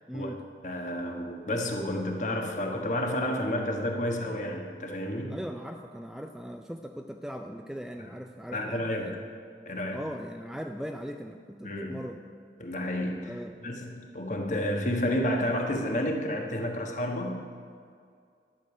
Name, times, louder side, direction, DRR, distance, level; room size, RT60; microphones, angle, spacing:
voice 1, 0.1-0.4 5.3-9.2 9.9-12.2 13.2-13.6, equal, 5° right, 4 dB, 0.4 m, -39 dB
voice 2, 0.6-5.4 8.5-9.2 9.6-10.0 11.6-12.1 12.6-13.4 13.6-17.4, left 1 dB, 45° left, 3 dB, 1.4 m, -30 dB
12.0 x 6.9 x 9.1 m, 2.2 s
head